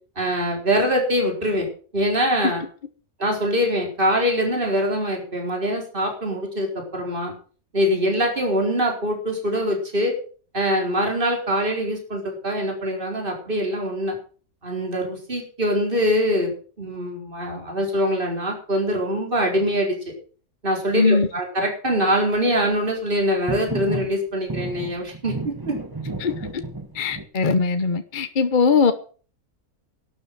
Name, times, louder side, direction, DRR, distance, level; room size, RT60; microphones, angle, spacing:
voice 1, 0.2-1.7 1.9-2.6 3.2-7.3 7.7-10.1 10.5-14.2 14.6-20.1 20.6-25.7, equal, 35° right, 4.6 m, -23 dB
voice 2, 20.9-21.3 26.2-26.3 26.9-28.9, left 4 dB, 35° left, 1.0 m, -20 dB
sound 1, 23.5-24.1 24.5-27.2, right 2 dB, 15° right, 1.3 m, -31 dB
12.0 x 9.3 x 7.5 m
omnidirectional pair, 1.6 m